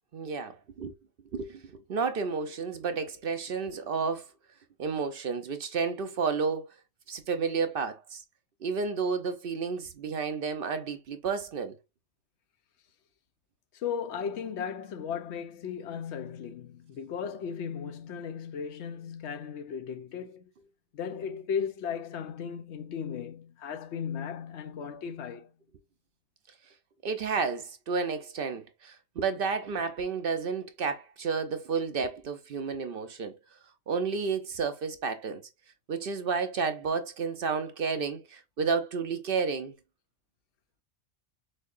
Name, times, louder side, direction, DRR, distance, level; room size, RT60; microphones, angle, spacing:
voice 1, 0.1-0.9 1.3-4.3 4.8-6.7 7.1-8.2 8.6-11.8 27.0-33.4 33.9-35.4 35.9-39.7, right 5 dB, 60° right, 0.7 m, -31 dB
voice 2, 13.7-20.4 20.9-25.5, left 7 dB, 70° left, 0.9 m, -36 dB
6.3 x 2.8 x 2.4 m
omnidirectional pair, 1.2 m